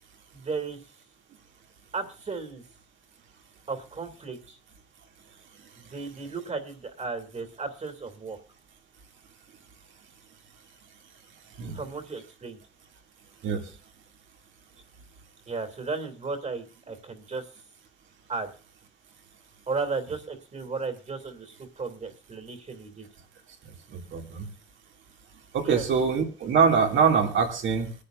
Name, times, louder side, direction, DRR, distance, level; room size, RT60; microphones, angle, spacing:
voice 1, 0.3-0.8 1.9-2.6 3.7-4.6 5.8-8.4 11.7-12.6 15.5-17.5 18.3-18.5 19.7-23.1 25.6-25.8, right 4 dB, 35° right, 7 dB, 2.5 m, -34 dB
voice 2, 23.9-24.5 25.5-27.9, right 6 dB, 70° right, 2 dB, 2.5 m, -24 dB
24.0 x 9.8 x 2.6 m, 0.34 s
cardioid pair, 90°, 20 cm